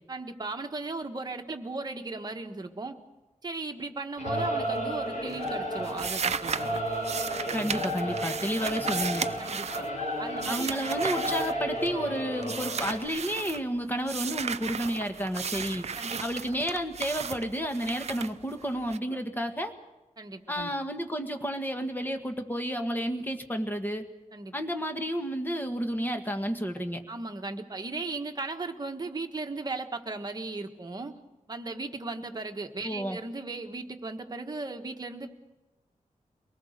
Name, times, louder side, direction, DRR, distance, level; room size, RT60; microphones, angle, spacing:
voice 1, 0.1-3.0 3.4-6.8 9.4-9.9 10.2-10.8 15.9-16.2 19.1-19.2 20.2-20.7 24.3-24.5 27.1-31.2 31.5-35.3, right 3 dB, 30° right, 4 dB, 1.5 m, -37 dB
Singing / Musical instrument, 4.2-13.1, equal, 70° left, 6.0 m, -33 dB
sound 1, 4.6-5.1 5.3-12.1 12.4-13.6 14.1-19.0, right 6 dB, 55° right, 0.6 m, -35 dB
voice 2, 7.5-9.2 10.5-15.8 16.2-19.7 20.5-24.0 24.5-27.0 32.8-33.2, equal, 15° left, 6 dB, 1.6 m, -31 dB
23.5 x 19.0 x 6.7 m, 1.1 s
wide cardioid pair, 155°, 13 cm